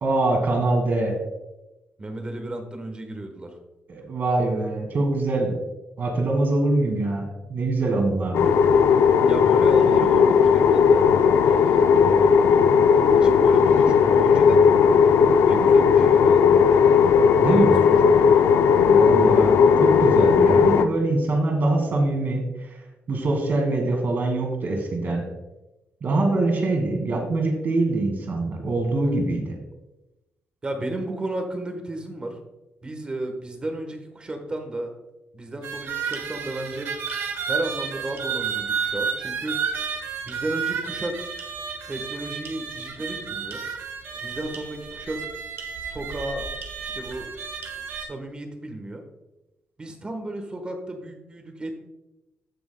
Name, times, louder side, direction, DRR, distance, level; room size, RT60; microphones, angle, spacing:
voice 1, 0.0-1.2 3.9-5.6 6.0-8.5 17.4-17.8 18.9-22.8 23.1-25.2 26.0-29.6, right 2 dB, 50° right, 2 dB, 2.0 m, -24 dB
voice 2, 2.0-3.5 9.3-12.7 13.2-14.6 15.4-16.4 17.5-18.3 30.6-32.4 32.8-34.9 35.3-36.9 37.5-39.6 40.2-41.2 41.9-43.6 44.2-45.2 45.9-46.5 46.8-47.3 48.0-49.0 49.8-51.9, right 1 dB, 25° right, 5 dB, 1.2 m, -33 dB
sound 1, 8.3-20.9, left 6 dB, 75° left, 0.5 m, -16 dB
sound 2, 35.6-48.0, right 6 dB, 80° right, 1.6 m, -31 dB
15.5 x 6.1 x 2.2 m, 0.98 s
wide cardioid pair, 155°, 4 cm